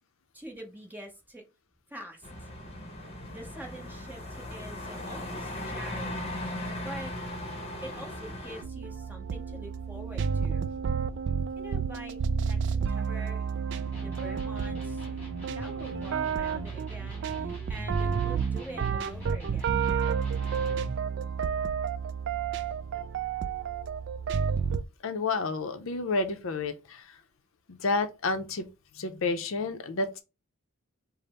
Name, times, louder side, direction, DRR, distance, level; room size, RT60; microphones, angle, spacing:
voice 1, 0.3-1.4 1.9-2.5 3.3-6.3 6.8-7.1 7.8-10.7 11.6-12.2 12.4-13.4 13.7-15.1 15.5-19.9, right 1 dB, 10° right, 0.9 m, -45 dB
sound 1, 2.2-8.6, left 1 dB, 30° left, 1.0 m, -38 dB
sound 2, 8.6-24.8, right 6 dB, 55° right, 0.3 m, -30 dB
Electric guitar, 13.7-21.0, equal, 10° left, 2.1 m, -43 dB
voice 2, 25.0-27.2 27.7-28.7 28.9-30.2, left 3 dB, 65° left, 0.6 m, -30 dB
5.1 x 2.1 x 4.1 m
head